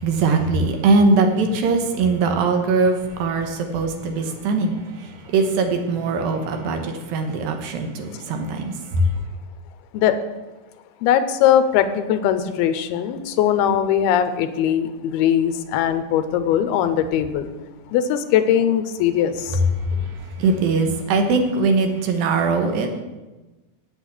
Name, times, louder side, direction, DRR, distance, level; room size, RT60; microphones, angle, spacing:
voice 1, 0.0-9.1 19.9-20.0 20.4-23.0, right 3 dB, 70° right, 5 dB, 2.6 m, -21 dB
voice 2, 11.0-17.5 17.9-19.5, left 9 dB, 90° left, 10 dB, 2.6 m, -20 dB
8.6 x 8.2 x 7.6 m, 1.1 s
omnidirectional pair, 4.5 m